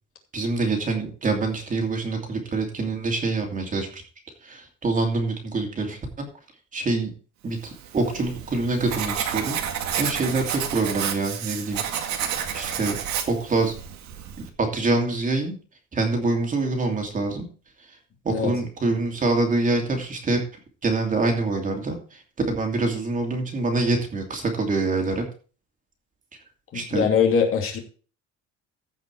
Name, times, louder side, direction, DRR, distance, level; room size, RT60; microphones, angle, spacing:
voice 1, 0.3-4.0 4.4-6.3 6.7-7.1 7.4-9.6 10.0-11.8 12.5-13.0 13.3-13.7 14.6-15.5 15.9-17.5 18.2-20.4 20.8-22.2 22.5-25.2 26.7-27.0, right 3 dB, 25° right, 3 dB, 2.8 m, -25 dB
Writing, 7.8-14.5, right 8 dB, 65° right, 2.0 m, -30 dB
voice 2, 26.7-27.8, left 7 dB, 45° left, 2 dB, 2.7 m, -22 dB
15.5 x 5.6 x 4.7 m, 0.37 s
cardioid pair, 160°, 30 cm